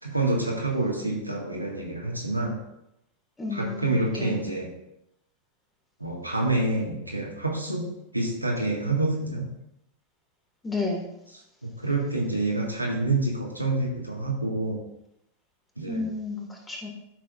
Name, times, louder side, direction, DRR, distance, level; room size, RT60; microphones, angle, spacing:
voice 1, 0.0-2.6 3.5-4.7 6.0-7.9 8.1-9.5 11.6-14.8 15.8-16.0, right 2 dB, 90° right, -2 dB, 1.7 m, -27 dB
voice 2, 3.4-4.4 10.6-11.1 15.9-16.9, left 3 dB, 15° left, -1 dB, 2.1 m, -32 dB
12.5 x 6.4 x 2.5 m, 0.83 s
figure-of-eight pair, 90°, 0 cm